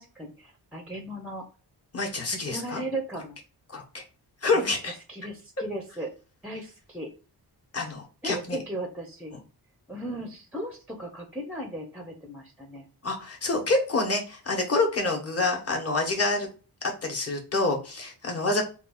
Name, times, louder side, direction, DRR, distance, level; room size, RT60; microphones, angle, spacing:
voice 1, 0.0-1.4 2.3-3.4 4.6-4.7 5.1-6.1 6.4-7.1 8.2-9.3 9.9-12.9, right 1 dB, 5° right, 2 dB, 0.5 m, -36 dB
voice 2, 1.9-2.8 3.7-4.0 4.4-4.9 7.7-8.6 13.0-16.5 17.0-18.6, left 2 dB, 35° left, 1 dB, 1.1 m, -27 dB
3.3 x 2.4 x 4.4 m, 0.36 s
wide cardioid pair, 160°, 40 cm